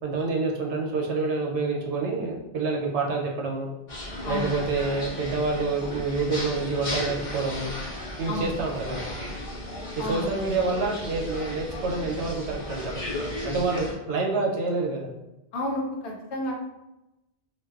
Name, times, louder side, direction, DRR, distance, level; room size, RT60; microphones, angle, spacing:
voice 1, 0.0-3.7 4.3-7.7 8.2-9.0 10.0-13.0 13.4-15.1, right 3 dB, 80° right, -1 dB, 0.9 m, -27 dB
sound 1, 3.9-13.9, left 1 dB, 35° left, 0.7 m, -35 dB
voice 2, 4.2-4.5 8.2-8.5 10.0-10.3 15.5-16.5, left 1 dB, 75° left, -1 dB, 0.9 m, -30 dB
2.6 x 2.2 x 2.3 m, 0.93 s
omnidirectional pair, 1.2 m